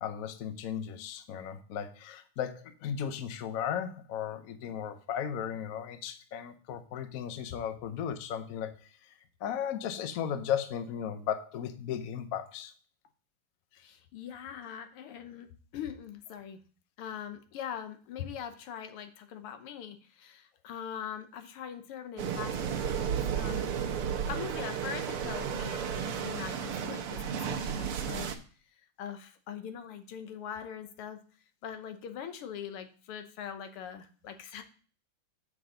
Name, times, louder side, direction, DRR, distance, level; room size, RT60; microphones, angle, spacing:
voice 1, 0.0-9.1 9.4-12.7, left 8 dB, 60° left, 9 dB, 0.9 m, -36 dB
voice 2, 13.8-16.6 17.0-28.4 29.0-31.2 31.6-34.6, left 8 dB, 85° left, 8 dB, 1.8 m, -42 dB
sound 1, 22.2-28.4, right 8 dB, 85° right, 1.8 m, -33 dB
7.2 x 6.6 x 3.8 m, 0.41 s
omnidirectional pair, 2.4 m